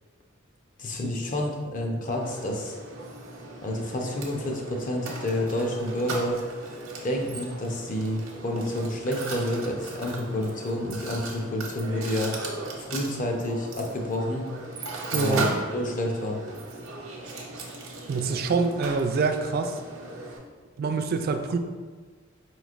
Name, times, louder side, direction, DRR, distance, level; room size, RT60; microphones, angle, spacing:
voice 1, 0.8-2.7 3.6-6.4 7.0-12.4 12.8-14.5 15.1-16.4, left 1 dB, 40° left, 1 dB, 0.6 m, -29 dB
Mechanisms, 2.2-20.4, right 2 dB, 90° right, 0.7 m, -37 dB
voice 2, 15.1-15.5 18.1-19.8 20.8-21.6, right 4 dB, 50° right, 7 dB, 0.3 m, -25 dB
4.9 x 3.1 x 2.4 m, 1.5 s
head